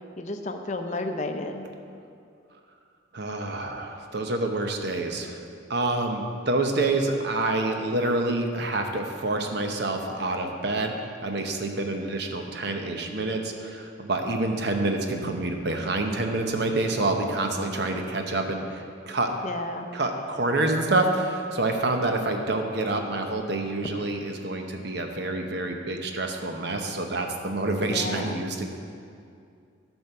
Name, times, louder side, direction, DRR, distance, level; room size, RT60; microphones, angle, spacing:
voice 1, 0.2-1.7 19.4-19.9 27.9-28.4, left 2 dB, 40° left, 5 dB, 0.6 m, -32 dB
voice 2, 3.1-5.4 5.7-19.3 19.9-28.7, right 2 dB, 55° right, 4 dB, 0.9 m, -27 dB
11.5 x 4.5 x 6.7 m, 2.4 s
head